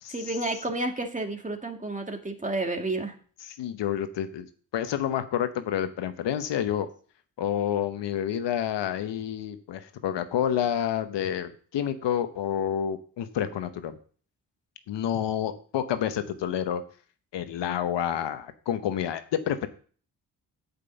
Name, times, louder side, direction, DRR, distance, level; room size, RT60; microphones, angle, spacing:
voice 1, 0.1-3.1, right 2 dB, 20° right, 3 dB, 2.1 m, -31 dB
voice 2, 3.4-4.5 4.7-6.9 7.4-14.0 14.9-16.8 17.3-19.7, left 9 dB, 80° left, 10 dB, 1.0 m, -29 dB
8.4 x 5.5 x 6.9 m, 0.43 s
supercardioid pair, 45°, 42 cm